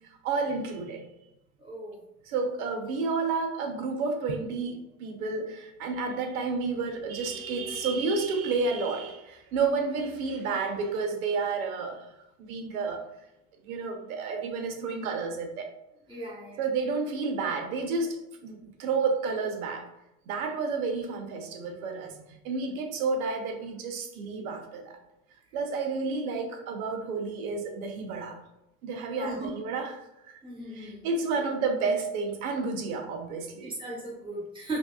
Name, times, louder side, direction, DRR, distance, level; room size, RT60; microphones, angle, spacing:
voice 1, 0.2-1.1 2.3-12.0 12.5-13.0 13.7-15.7 16.6-19.8 20.3-24.9 25.5-28.4 28.8-30.4 30.7-33.7, right 4 dB, 70° right, 5 dB, 0.9 m, -31 dB
voice 2, 1.6-2.0 16.1-16.6 29.2-29.5 30.4-31.0 31.3-31.4 33.6-34.8, right 1 dB, 10° right, -3 dB, 1.3 m, -37 dB
5.1 x 2.7 x 2.3 m, 0.88 s
hypercardioid pair, 110°, 43 cm